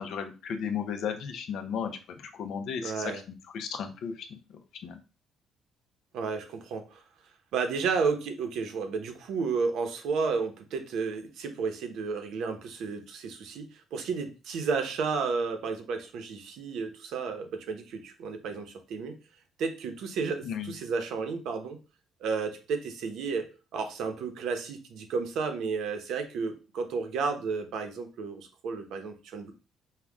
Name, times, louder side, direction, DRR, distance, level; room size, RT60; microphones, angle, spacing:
voice 1, 0.0-3.0 3.5-4.4 4.8-5.0 20.4-20.7, left 7 dB, 60° left, 7 dB, 0.7 m, -34 dB
voice 2, 2.8-3.2 6.1-7.0 7.5-19.1 19.6-21.8 22.2-23.5 23.7-29.5, right 5 dB, 70° right, 6 dB, 0.9 m, -32 dB
5.6 x 2.3 x 3.5 m, 0.33 s
cardioid pair, 155°, 0 cm